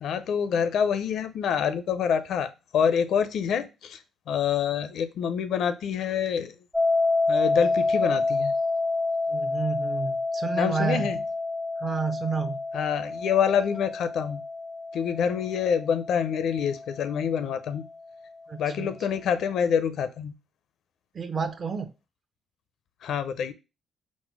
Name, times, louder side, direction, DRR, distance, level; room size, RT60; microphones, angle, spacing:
voice 1, 0.0-4.0 4.3-6.5 7.3-8.5 10.6-11.2 12.7-14.4 14.9-17.9 18.6-20.3 23.0-23.5, left 7 dB, 75° left, 0.5 m, -26 dB
sound 1, 6.7-17.7, left 3 dB, 5° left, 0.4 m, -28 dB
voice 2, 9.3-11.1 11.8-12.6 18.5-19.0 21.1-21.9, right 5 dB, 45° right, 0.6 m, -30 dB
4.1 x 2.1 x 4.5 m
cardioid pair, 90°, 0 cm